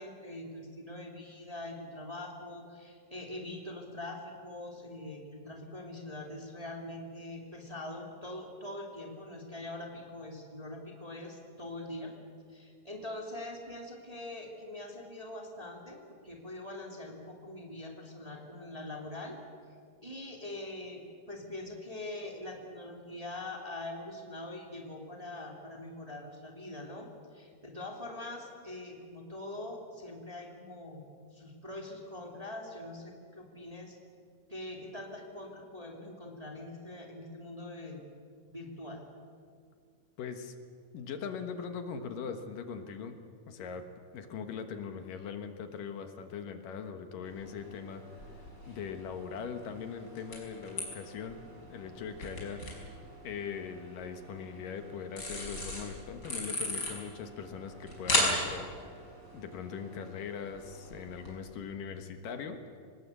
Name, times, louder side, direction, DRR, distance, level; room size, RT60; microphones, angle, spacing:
voice 1, 0.0-12.1 12.5-19.4 20.0-31.0 31.3-34.0 34.5-38.0 38.5-39.0, left 1 dB, 10° right, 0 dB, 2.2 m, -43 dB
voice 2, 40.2-40.5 40.9-43.2 43.5-43.9 44.1-51.4 51.7-52.6 53.2-59.1 59.3-62.8, left 6 dB, 75° left, 7 dB, 2.9 m, -41 dB
sound 1, 47.2-61.3, left 1 dB, 30° left, 5.8 m, -38 dB
25.5 x 20.0 x 8.4 m, 2.2 s
omnidirectional pair, 4.0 m